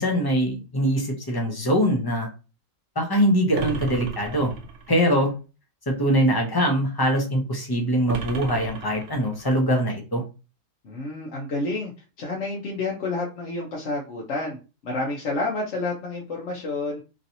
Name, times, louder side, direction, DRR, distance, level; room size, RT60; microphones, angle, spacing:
voice 1, 0.0-2.3 3.0-4.5 4.9-5.3 5.9-10.2, equal, 25° left, 1 dB, 0.5 m, -22 dB
sound 1, 3.5-5.0 8.1-9.6, right 6 dB, 65° right, 0.8 m, -35 dB
voice 2, 10.8-11.9 12.2-14.6 14.8-17.0, left 2 dB, 65° left, -2 dB, 1.0 m, -29 dB
3.1 x 2.8 x 2.6 m, 0.31 s
omnidirectional pair, 1.4 m